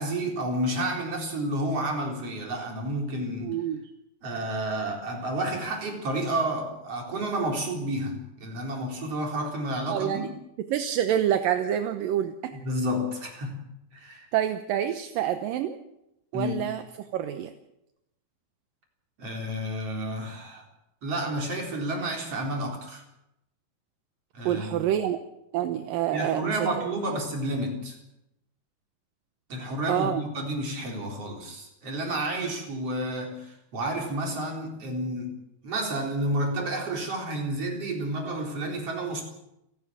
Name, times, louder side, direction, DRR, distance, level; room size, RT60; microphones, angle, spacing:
voice 1, 0.0-3.5 4.2-10.3 12.5-13.6 13.9-14.3 16.3-16.7 19.2-20.6 21.0-23.0 24.3-24.9 26.1-28.0 29.5-35.3 35.6-39.2, right 1 dB, 40° right, 1 dB, 4.9 m, -30 dB
voice 2, 3.4-3.8 9.9-10.3 10.7-12.6 14.3-15.8 16.3-16.8 17.1-17.5 24.5-25.2 25.5-26.7 29.9-30.2, right 10 dB, 75° right, 8 dB, 2.5 m, -27 dB
29.5 x 12.0 x 7.5 m, 0.85 s
omnidirectional pair, 4.4 m